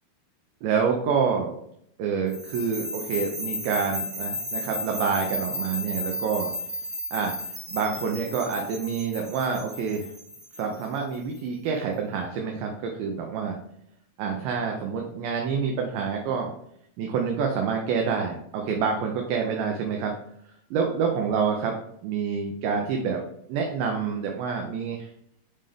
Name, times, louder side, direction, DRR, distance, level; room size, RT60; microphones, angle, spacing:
voice 1, 0.6-1.5 2.0-6.5 7.1-10.1 10.6-13.6 14.2-16.5 17.0-20.1 20.7-21.7 22.0-23.2 23.5-25.1, right 6 dB, 80° right, 2 dB, 2.3 m, -27 dB
sound 1, 2.3-11.4, left 1 dB, 40° right, 1.0 m, -34 dB
5.6 x 5.3 x 3.4 m, 0.73 s
omnidirectional pair, 4.6 m